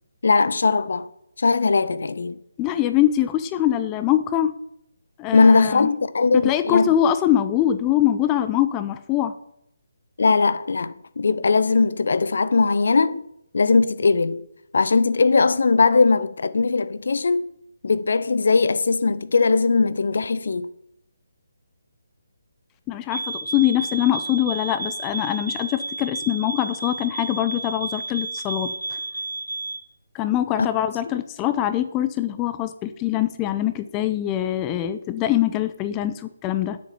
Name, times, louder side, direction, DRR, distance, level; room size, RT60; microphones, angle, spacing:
voice 1, 0.2-1.1 1.4-2.4 5.3-6.9 10.2-13.2 13.5-14.5 14.7-17.4 17.8-20.7 30.6-30.7, left 4 dB, 55° left, 0.6 m, -19 dB
voice 2, 2.6-4.6 5.2-5.9 6.4-9.3 22.9-29.0 30.1-36.8, left 12 dB, 15° left, 0.6 m, -23 dB
sound 1, 23.1-29.9, right 3 dB, 70° right, 1.3 m, -32 dB
9.9 x 7.6 x 5.5 m
figure-of-eight pair, 145°, 0 cm